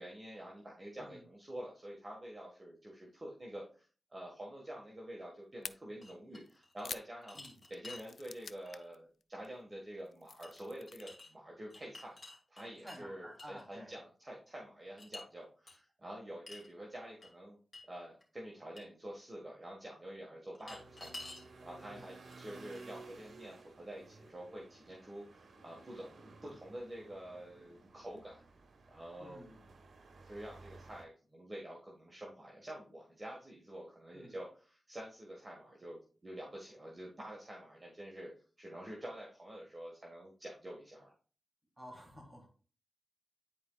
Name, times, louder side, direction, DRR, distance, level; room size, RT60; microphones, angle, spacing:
voice 1, 0.0-7.4 7.7-12.2 12.5-17.6 17.9-28.4 28.9-29.5 30.3-38.3 38.6-41.1, right 1 dB, 25° right, -3 dB, 1.7 m, -48 dB
sound 1, 5.6-5.7 6.5-9.0 9.2-9.5 9.9-11.0, left 5 dB, 75° left, 0.3 m, -47 dB
sound 2, 6.0-6.9 7.2-8.1 8.6-8.8 10.4-10.6 10.9-11.3 11.7-13.0 13.4-13.6 15.0-15.2 15.7-15.8 16.5-16.7 17.2-17.3 17.7-17.8 18.2-18.3 18.8-18.9 20.5-21.5 22.3-22.4 22.7-23.3, left 2 dB, 45° left, 2.4 m, -50 dB
voice 2, 12.8-13.9 21.9-22.1 29.2-29.7 34.1-34.3 41.8-42.5, equal, 10° right, -2 dB, 3.0 m, -52 dB
sound 3, 20.7-31.1, right 3 dB, 80° right, 1.1 m, -56 dB
10.5 x 4.4 x 2.4 m, 0.38 s
wide cardioid pair, 80°, 0 cm